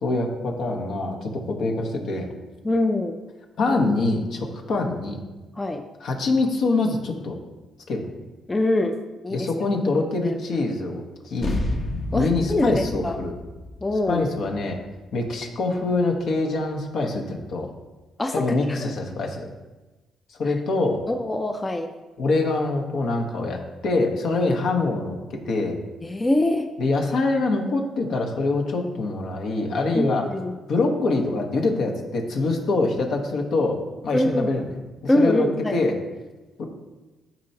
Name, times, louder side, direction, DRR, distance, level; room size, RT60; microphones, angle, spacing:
voice 1, 0.0-2.3 3.6-5.2 6.0-7.4 7.9-8.1 9.3-11.5 12.1-13.3 14.1-14.8 15.1-17.7 18.3-19.5 20.4-21.0 22.2-25.8 26.8-30.3 30.7-33.8 34.0-34.7 35.1-36.0 36.6-36.7, left 3 dB, 70° left, 2 dB, 1.2 m, -24 dB
voice 2, 2.6-3.2 5.6-5.8 8.5-9.0 9.2-9.5 10.2-10.3 12.1-13.2 13.8-14.3 18.2-18.9 21.1-21.9 26.0-26.7 29.9-30.6 34.1-34.5 35.1-35.8, left 1 dB, 20° left, 5 dB, 0.5 m, -24 dB
sound 1, 11.4-16.2, left 1 dB, 50° left, 1.0 m, -32 dB
12.0 x 4.4 x 2.9 m, 1.2 s
cardioid pair, 90°, 0 cm